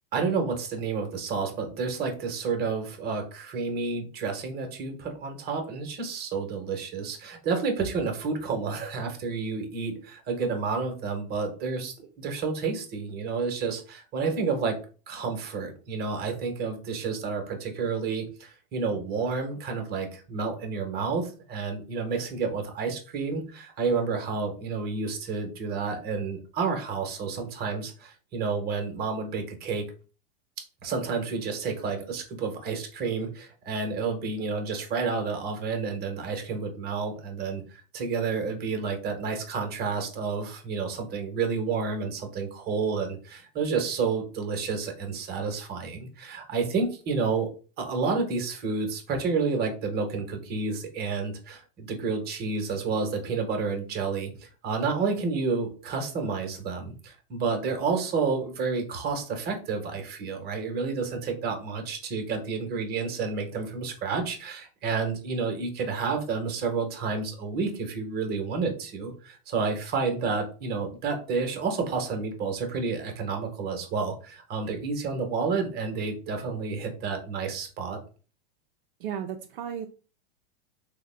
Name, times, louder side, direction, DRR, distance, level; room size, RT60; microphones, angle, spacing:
voice 1, 0.1-14.8 15.1-29.8 30.8-47.5 47.8-78.0, right 4 dB, 35° right, 5 dB, 0.9 m, -30 dB
voice 2, 79.0-79.9, right 8 dB, 65° right, 5 dB, 0.5 m, -34 dB
3.4 x 2.2 x 3.2 m, 0.36 s
hypercardioid pair, 115°, 29 cm